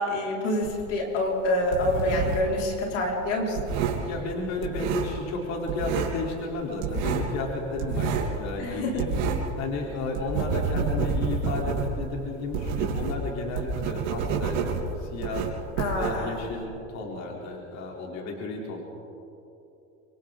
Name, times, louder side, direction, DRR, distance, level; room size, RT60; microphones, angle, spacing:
voice 1, 0.0-3.6 8.6-8.9 9.3-9.4 15.8-16.4, left 1 dB, 85° left, -2 dB, 5.3 m, -27 dB
sound 1, 0.6-2.6 2.8-5.4 5.7-6.3 6.5-9.6 9.9-16.6, right 5 dB, 70° right, 3.6 m, -29 dB
voice 2, 4.0-9.1 9.5-15.5 15.9-18.8, left 3 dB, 50° left, -1 dB, 3.7 m, -33 dB
27.0 x 24.5 x 3.9 m, 2.9 s
supercardioid pair, 100°, 36 cm